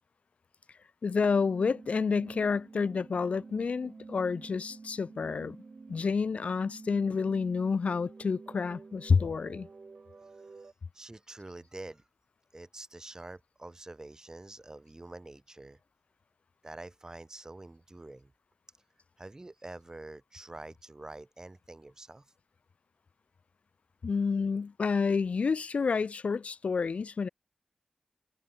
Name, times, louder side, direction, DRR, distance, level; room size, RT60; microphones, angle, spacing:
voice 1, 1.0-5.6 5.9-9.7 24.0-27.3, left 5 dB, 70° left, 1.0 m, -29 dB
sound 1, 1.1-10.7, right 4 dB, 55° right, 4.3 m, -50 dB
voice 2, 10.4-12.1 12.5-15.8 16.6-18.3 19.2-22.3, right 2 dB, 25° right, 6.6 m, -47 dB
wide cardioid pair, 75°, 2 cm